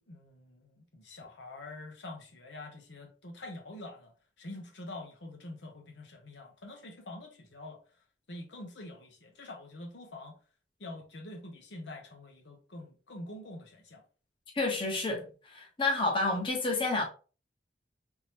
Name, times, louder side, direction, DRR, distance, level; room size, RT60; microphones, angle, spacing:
voice 1, 0.0-4.1 4.4-7.8 8.3-10.4 10.8-14.0, left 2 dB, 80° left, 0.9 m, -46 dB
voice 2, 14.5-17.0, left 2 dB, 30° left, 1.0 m, -30 dB
3.6 x 3.2 x 2.9 m
head